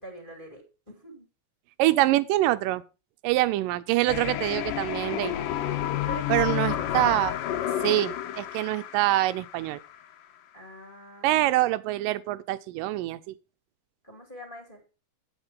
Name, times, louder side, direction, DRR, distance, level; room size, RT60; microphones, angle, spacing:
voice 1, 0.0-1.3 6.1-7.2 10.5-11.3 14.0-14.8, right 2 dB, 15° left, 2.1 m, -43 dB
voice 2, 1.8-2.8 3.2-5.3 6.3-7.3 7.8-9.8 11.2-13.3, right 16 dB, 90° right, 2.3 m, -25 dB
sound 1, 4.1-10.0, left 11 dB, 90° left, 2.6 m, -30 dB
8.7 x 8.2 x 5.1 m
omnidirectional pair, 3.8 m